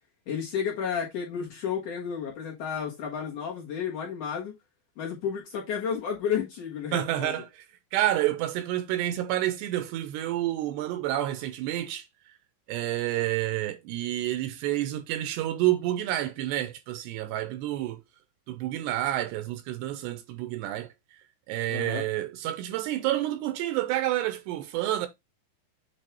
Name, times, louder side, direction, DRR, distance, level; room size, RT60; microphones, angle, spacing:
voice 1, 0.3-4.5 5.0-7.3 21.7-22.0, left 7 dB, 60° left, 2.3 m, -32 dB
voice 2, 6.9-7.6 7.9-12.1 12.7-18.0 18.5-20.9 21.5-25.1, right 14 dB, 80° right, 2.6 m, -29 dB
8.3 x 2.8 x 4.4 m
omnidirectional pair, 5.1 m